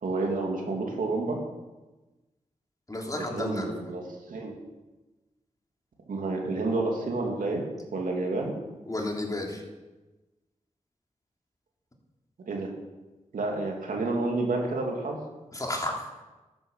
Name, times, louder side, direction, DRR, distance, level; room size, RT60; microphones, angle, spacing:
voice 1, 0.0-1.4 3.2-4.6 6.1-7.6 7.9-8.6 12.5-12.7 13.3-15.2, right 3 dB, 85° right, 0 dB, 2.8 m, -29 dB
voice 2, 2.9-3.7 8.9-9.6 15.5-16.1, left 1 dB, 25° left, 0 dB, 3.2 m, -32 dB
12.0 x 8.9 x 7.5 m, 1.1 s
cardioid pair, 60°, 14 cm